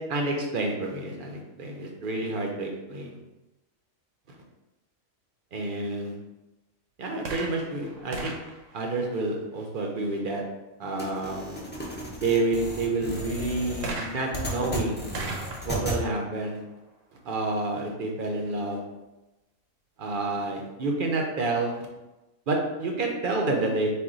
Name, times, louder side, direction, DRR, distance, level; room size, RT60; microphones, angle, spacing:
voice 1, 0.1-3.2 5.5-6.2 7.0-8.3 8.7-10.4 10.8-11.4 12.2-15.1 15.6-16.6 17.2-18.8 20.0-21.9 22.5-23.9, right 2 dB, 55° right, 0 dB, 0.6 m, -29 dB
sound 1, 7.2-9.8 13.8-17.5 18.3-18.4, right 2 dB, 70° right, 1.0 m, -39 dB
sound 2, 11.0-16.0, equal, 15° left, 0.4 m, -35 dB
4.2 x 2.2 x 3.8 m, 1.0 s
omnidirectional pair, 1.4 m